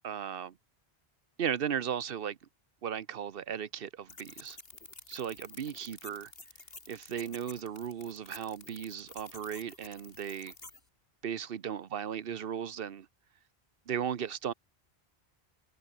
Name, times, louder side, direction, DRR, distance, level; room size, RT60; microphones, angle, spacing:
voice 1, 0.0-0.6 1.4-2.4 2.8-4.6 5.1-6.3 6.9-10.5 11.2-13.1 13.9-14.5, right 8 dB, 65° right, 1.0 m, -36 dB
sound 1, 4.1-10.8, left 3 dB, 65° left, 3.3 m, -51 dB
omnidirectional pair, 1.0 m